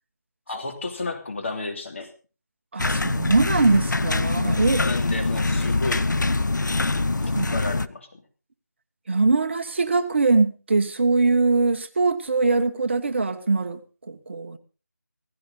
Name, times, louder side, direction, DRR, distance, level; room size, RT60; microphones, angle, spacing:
voice 1, 0.5-2.1 4.5-6.3 7.5-8.2, left 3 dB, 40° left, 3.0 m, -32 dB
voice 2, 2.7-4.8 7.3-7.5 9.1-13.8 14.1-14.6, right 3 dB, 40° right, 1.3 m, -22 dB
sound 1, 2.8-7.9, left 3 dB, 80° left, 0.8 m, -24 dB
17.0 x 16.0 x 3.9 m
figure-of-eight pair, 170°, 10 cm